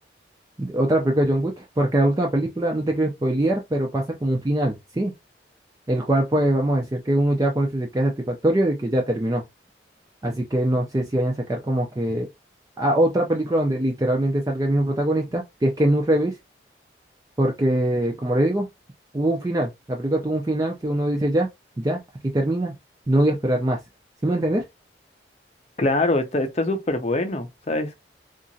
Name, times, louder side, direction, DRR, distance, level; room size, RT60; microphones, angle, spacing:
voice 1, 0.6-5.1 5.9-9.4 10.2-12.3 12.8-16.4 17.4-18.7 19.1-21.5 21.8-22.0 22.3-22.7 23.1-23.8 24.2-24.6, right 1 dB, 20° right, 0.4 m, -22 dB
voice 2, 25.8-28.0, left 2 dB, 35° left, 0.5 m, -23 dB
2.9 x 2.4 x 2.6 m
head